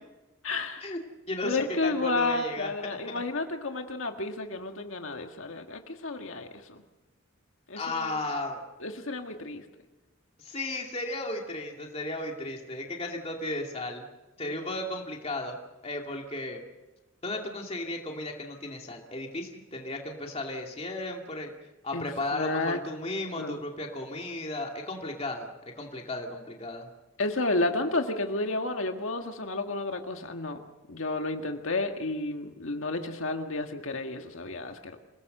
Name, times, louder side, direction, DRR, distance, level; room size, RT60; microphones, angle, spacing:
voice 1, 0.4-0.9 1.4-6.8 7.7-8.2 8.8-9.6 21.9-22.1 22.3-22.8 23.4-23.6 27.2-30.6 30.9-35.0, left 2 dB, 70° left, 4 dB, 1.8 m, -31 dB
voice 2, 1.3-3.2 7.8-8.6 10.4-14.0 14.4-15.5 15.8-16.6 17.2-21.5 21.8-26.9, left 2 dB, 30° left, 1 dB, 2.5 m, -35 dB
27.5 x 18.0 x 6.7 m, 1.1 s
head